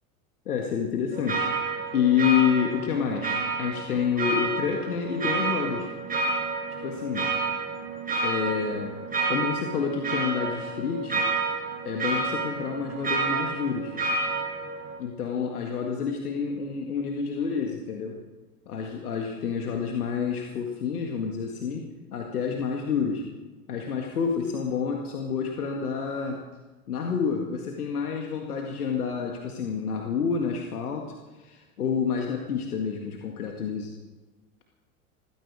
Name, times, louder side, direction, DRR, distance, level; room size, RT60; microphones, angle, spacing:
voice 1, 0.5-1.5 1.9-5.9 6.8-7.3 8.2-8.9 9.3-11.2 11.8-13.9 15.0-18.2 18.7-23.2 23.7-26.4 26.9-31.1 31.4-33.9, left 7 dB, 80° left, 1 dB, 2.0 m, -28 dB
sound 1, 1.1-15.0, right 3 dB, 20° right, 5.9 m, -30 dB
17.5 x 16.0 x 4.9 m, 1.2 s
hypercardioid pair, 95°, 44 cm